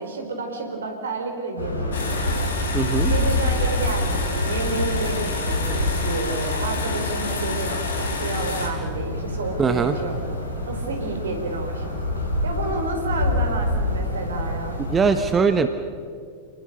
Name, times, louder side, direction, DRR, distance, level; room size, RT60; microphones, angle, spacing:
voice 1, 0.0-2.4 3.0-12.1 12.4-14.8, right 3 dB, 65° right, 5 dB, 4.3 m, -30 dB
sound 1, 1.6-15.2, left 1 dB, 90° right, 5.6 m, -27 dB
sound 2, 1.9-8.7, left 3 dB, 65° left, 4.1 m, -29 dB
voice 2, 2.7-3.1 9.6-10.0 14.9-15.7, right 5 dB, 20° right, 9 dB, 1.1 m, -20 dB
29.0 x 19.5 x 6.7 m, 2.2 s
figure-of-eight pair, 90°, 0 cm